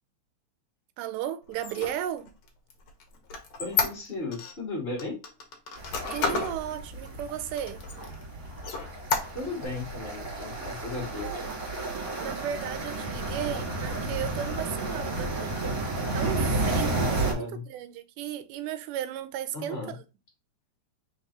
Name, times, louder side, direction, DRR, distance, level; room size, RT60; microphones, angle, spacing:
voice 1, 1.0-2.3 6.1-7.8 11.2-11.3 12.2-15.6 16.1-20.0, right 10 dB, 85° right, 2.2 m, -35 dB
Squeak, 1.5-4.5 5.0-6.6 7.0-7.1 7.6-8.2 8.6-9.7, left 5 dB, 65° left, 1.2 m, -31 dB
voice 2, 3.6-5.2 9.3-11.4 16.9-17.7 19.5-19.9, left 3 dB, 90° left, 0.5 m, -36 dB
sound 1, 5.8-17.3, right 2 dB, 35° right, 1.5 m, -32 dB
4.7 x 3.8 x 2.8 m
omnidirectional pair, 3.7 m